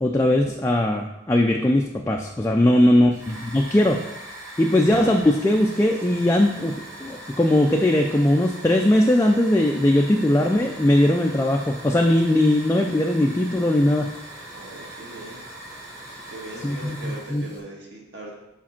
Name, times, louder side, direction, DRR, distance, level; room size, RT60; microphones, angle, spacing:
voice 1, 0.0-4.0 4.6-6.7 7.0-14.1 16.6-17.4, left 1 dB, 15° left, 1 dB, 0.3 m, -20 dB
voice 2, 2.6-3.1 14.5-15.4 16.3-18.3, right 2 dB, 60° right, -3 dB, 1.7 m, -40 dB
Hiss / Fire, 3.1-17.6, right 1 dB, 15° right, 1.0 m, -40 dB
5.2 x 4.9 x 5.8 m, 0.93 s
head